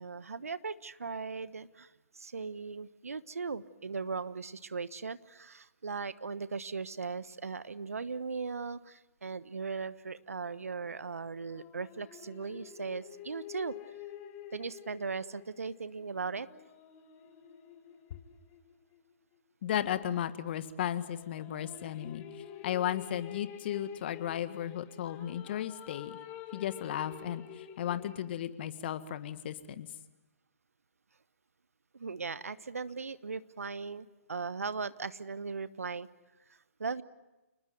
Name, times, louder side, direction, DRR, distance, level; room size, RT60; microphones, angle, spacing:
voice 1, 0.0-13.7 14.5-16.5 31.9-36.1 36.8-37.0, right 4 dB, 80° right, 15 dB, 1.2 m, -38 dB
sound 1, 11.5-19.1 21.0-28.4, left 10 dB, 25° left, 1.9 m, -49 dB
voice 2, 19.6-22.2 22.6-26.2 26.5-29.9, left 10 dB, 45° left, 12 dB, 1.7 m, -35 dB
29.5 x 19.5 x 9.2 m, 1.1 s
figure-of-eight pair, 135°, 8 cm